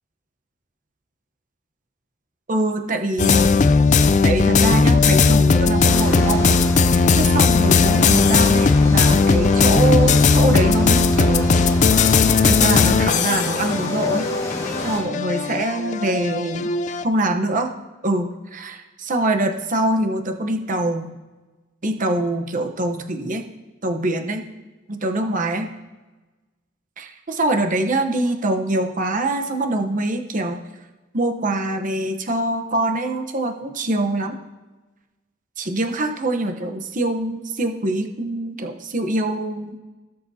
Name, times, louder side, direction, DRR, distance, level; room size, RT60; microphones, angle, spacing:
voice 1, 2.5-3.6 4.2-6.5 7.1-11.7 12.4-14.3 14.8-16.7 17.0-17.7 18.0-21.2 21.8-23.4 23.8-24.5 24.9-25.7 27.0-30.6 31.1-34.4 35.6-39.8, right 1 dB, 40° right, 5 dB, 0.9 m, -24 dB
sound 1, 3.2-17.0, left 4 dB, 35° left, 0.4 m, -17 dB
sound 2, 5.9-15.0, equal, 15° left, 1.4 m, -31 dB
18.0 x 6.6 x 2.8 m, 1.2 s
head